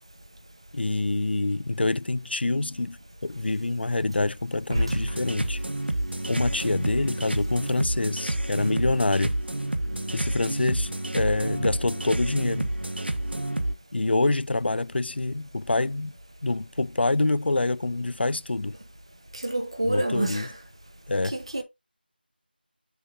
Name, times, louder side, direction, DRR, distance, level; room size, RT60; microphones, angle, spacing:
voice 1, 0.7-5.6 6.3-9.4 10.1-12.7 13.9-16.1 16.4-18.8 19.8-20.5 21.1-21.4, left 2 dB, 80° left, 0.3 m, -26 dB
sound 1, 4.9-13.7, right 1 dB, 80° right, 1.1 m, -29 dB
voice 2, 19.3-20.5 21.2-21.6, right 1 dB, 30° right, 0.8 m, -27 dB
6.8 x 2.6 x 5.4 m
figure-of-eight pair, 180°, 6 cm